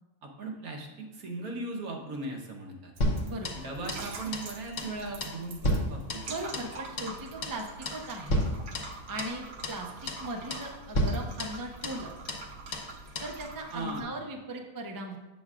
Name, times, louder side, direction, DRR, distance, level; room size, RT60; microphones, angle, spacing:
voice 1, 0.2-2.9 3.5-6.3 13.7-14.2, right 2 dB, 90° right, 0 dB, 1.6 m, -38 dB
sound 1, 3.0-4.1 4.3-4.5 4.8-5.0 5.2-6.7 7.0-7.2 7.4-7.6 7.9-8.0 8.3-9.4 9.6-9.8 10.1-10.3 10.5-10.7 10.9-12.0 12.3-12.5 12.7-12.9 13.2-13.3, equal, 60° left, 1.2 m, -31 dB
sound 2, 3.0-14.0, right 3 dB, 60° right, 1.0 m, -45 dB
voice 2, 6.3-8.4 9.1-12.1 13.2-15.2, right 1 dB, 35° right, 2 dB, 0.3 m, -38 dB
7.8 x 7.0 x 2.4 m, 1.1 s
omnidirectional pair, 1.5 m